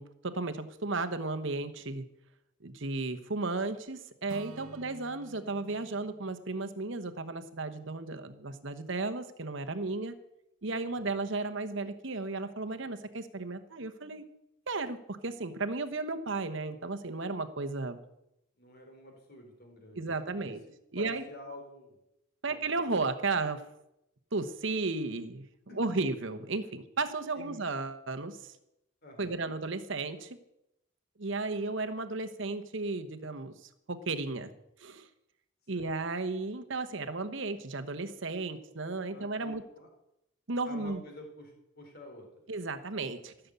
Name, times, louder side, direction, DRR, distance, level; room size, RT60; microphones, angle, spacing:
voice 1, 0.0-2.0 2.6-10.1 10.6-14.2 14.7-18.0 20.0-20.6 20.9-21.2 22.4-23.6 24.3-25.5 25.8-28.5 29.2-30.4 31.2-34.5 34.8-35.1 35.7-39.6 40.5-41.0 42.5-43.3, right 3 dB, 55° right, 9 dB, 1.0 m, -34 dB
Acoustic guitar / Strum, 4.3-8.6, right 3 dB, 85° right, 0.8 m, -53 dB
voice 2, 4.5-4.9 10.9-11.2 18.6-20.1 20.4-20.6 21.0-22.0 22.5-22.8 25.7-25.8 27.3-27.6 29.0-29.4 35.7-35.9 39.1-39.9 40.7-42.3, left 1 dB, 45° left, 2 dB, 3.6 m, -49 dB
15.5 x 6.9 x 8.2 m, 0.85 s
head